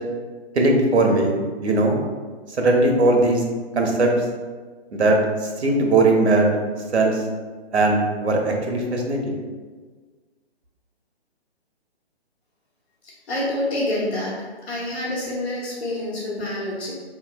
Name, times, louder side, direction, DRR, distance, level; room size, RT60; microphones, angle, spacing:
voice 1, 0.6-2.0 2.6-3.4 3.8-4.1 4.9-5.2 5.6-6.5 6.9-7.1 7.7-9.4, right 2 dB, 85° right, 1 dB, 0.9 m, -19 dB
voice 2, 13.3-14.3 14.7-16.9, left 1 dB, 75° left, -9 dB, 1.2 m, -27 dB
4.2 x 3.1 x 2.2 m, 1.5 s
hypercardioid pair, 155°, 33 cm